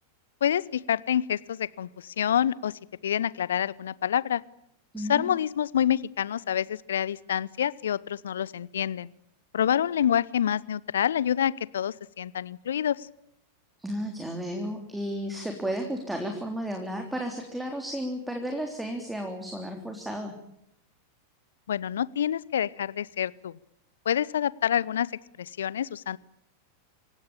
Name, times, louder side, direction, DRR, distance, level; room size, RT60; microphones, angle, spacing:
voice 1, 0.4-4.4 5.0-9.1 9.5-13.1 21.7-23.6 24.1-25.1 25.4-26.2, left 9 dB, 65° left, 22 dB, 0.8 m, -27 dB
voice 2, 4.9-5.4 13.8-20.3, equal, 5° right, 4 dB, 3.5 m, -33 dB
28.0 x 16.5 x 8.6 m, 0.80 s
figure-of-eight pair, 90°, 0 cm